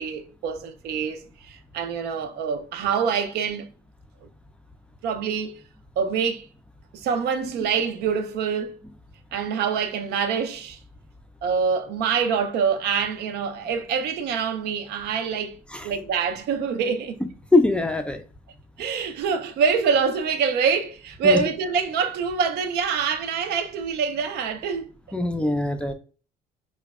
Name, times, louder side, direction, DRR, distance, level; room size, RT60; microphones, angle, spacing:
voice 1, 0.0-3.7 5.0-5.6 6.0-6.5 6.9-8.8 9.3-10.8 11.4-15.6 15.8-17.2 18.8-24.9, right 6 dB, 75° right, 0.4 m, -25 dB
voice 2, 17.5-18.2 21.2-21.4 25.1-25.9, left 2 dB, 5° left, 0.3 m, -22 dB
4.9 x 2.1 x 2.3 m
cardioid pair, 110°, 17 cm